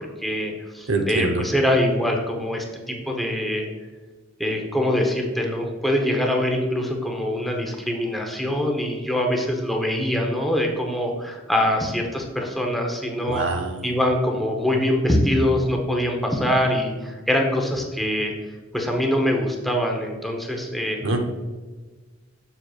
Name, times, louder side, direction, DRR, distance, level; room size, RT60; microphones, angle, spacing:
voice 1, 0.2-3.7 4.4-13.4 13.8-18.3 18.7-21.0, left 1 dB, ahead, 1 dB, 0.8 m, -23 dB
voice 2, 0.9-1.4 13.3-13.9 21.0-21.2, right 2 dB, 65° right, 5 dB, 0.8 m, -24 dB
7.4 x 6.5 x 2.4 m, 1.3 s
head